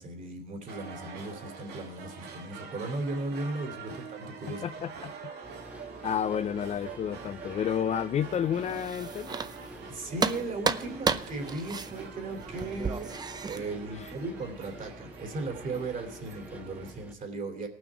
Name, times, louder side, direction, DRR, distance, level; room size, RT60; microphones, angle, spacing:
voice 1, 0.0-4.7 9.9-13.1 13.5-17.7, right 2 dB, 50° right, 2.9 m, -37 dB
sound 1, 0.7-16.9, right 6 dB, 75° right, 2.0 m, -45 dB
voice 2, 4.5-5.3 6.0-9.4 14.0-14.1, left 8 dB, 40° left, 0.4 m, -31 dB
sound 2, 5.4-17.1, equal, 10° right, 0.9 m, -48 dB
sound 3, 8.5-9.9 10.2-13.6, right 5 dB, 25° right, 0.6 m, -32 dB
18.0 x 6.3 x 4.7 m
cardioid pair, 110°, 17 cm